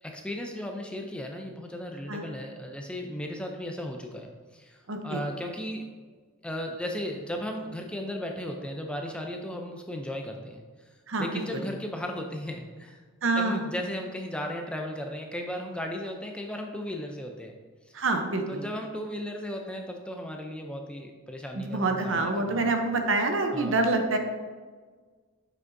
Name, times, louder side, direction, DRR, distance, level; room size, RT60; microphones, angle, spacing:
voice 1, 0.0-5.9 6.4-10.6 11.2-13.0 13.3-17.5 18.5-22.7 23.5-23.8, left 1 dB, 5° left, 2 dB, 0.4 m, -36 dB
voice 2, 4.9-5.2 11.1-11.6 13.2-13.6 17.9-18.6 21.5-24.2, right 3 dB, 60° right, 5 dB, 0.8 m, -27 dB
7.7 x 5.9 x 2.6 m, 1.5 s
head